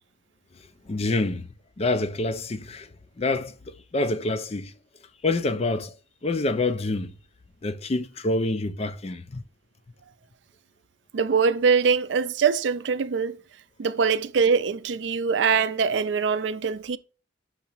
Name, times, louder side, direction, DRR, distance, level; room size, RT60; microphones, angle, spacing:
voice 1, 0.9-1.5 1.8-2.9 3.2-4.7 5.2-5.9 6.2-7.1 7.6-9.4, left 2 dB, 35° left, 0.5 m, -27 dB
voice 2, 11.1-13.4 13.8-17.0, right 5 dB, 70° right, 0.4 m, -23 dB
5.9 x 2.9 x 5.4 m
head